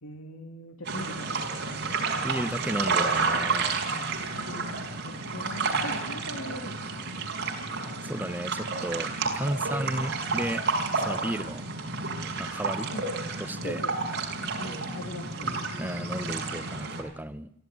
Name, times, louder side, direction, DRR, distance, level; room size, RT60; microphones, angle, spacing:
voice 1, 0.0-1.8 4.3-7.0 12.9-13.1 13.6-13.9 14.6-15.5, left 1 dB, 75° left, 3 dB, 3.0 m, -41 dB
sound 1, 0.8-17.0, right 4 dB, 55° right, 5.2 m, -31 dB
voice 2, 2.2-3.8 8.0-10.6 11.0-11.6 12.4-12.9 13.4-13.8 15.8-17.5, right 1 dB, 10° right, 12 dB, 0.9 m, -33 dB
23.5 x 15.0 x 9.4 m, 0.77 s
head